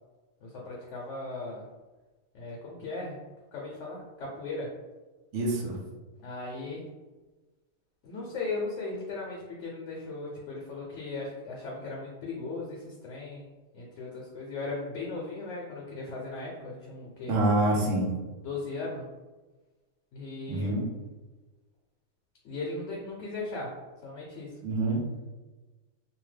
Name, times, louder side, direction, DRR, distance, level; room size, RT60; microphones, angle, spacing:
voice 1, 0.4-1.6 2.3-3.2 3.5-4.7 6.2-6.9 8.0-13.5 13.7-17.4 18.4-19.0 20.1-20.7 22.4-23.7 24.0-24.6, left 3 dB, 70° left, -3 dB, 0.9 m, -37 dB
voice 2, 5.3-5.8 17.3-18.1 20.5-20.8 24.6-25.0, right 1 dB, 70° right, -1 dB, 1.0 m, -26 dB
2.7 x 2.2 x 3.2 m, 1.2 s
omnidirectional pair, 1.4 m